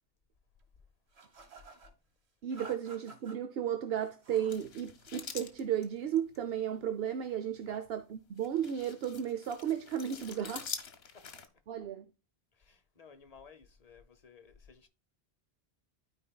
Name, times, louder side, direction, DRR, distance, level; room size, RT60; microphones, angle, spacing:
sound 1, 1.1-1.9 2.5-3.4 4.0-4.6 5.0-5.6, right 3 dB, 85° right, 1.4 m, -53 dB
voice 1, 2.4-10.6 11.7-12.0, right 9 dB, 70° right, 0.9 m, -34 dB
sound 2, 4.5-6.4 7.5-7.7 8.4-11.5, left 6 dB, 75° left, 1.2 m, -45 dB
voice 2, 12.5-14.9, left 5 dB, 40° left, 0.9 m, -56 dB
12.5 x 4.6 x 2.3 m
omnidirectional pair, 1.1 m